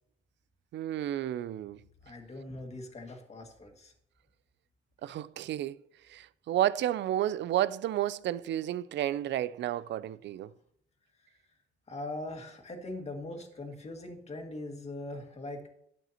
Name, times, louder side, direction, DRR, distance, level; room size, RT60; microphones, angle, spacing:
voice 1, 0.7-1.8 5.0-5.8 6.1-10.5, right 12 dB, 65° right, 0.4 m, -31 dB
voice 2, 2.0-3.9 11.9-15.7, left 2 dB, 35° left, 2.0 m, -41 dB
12.0 x 8.3 x 2.9 m
cardioid pair, 90°, 20 cm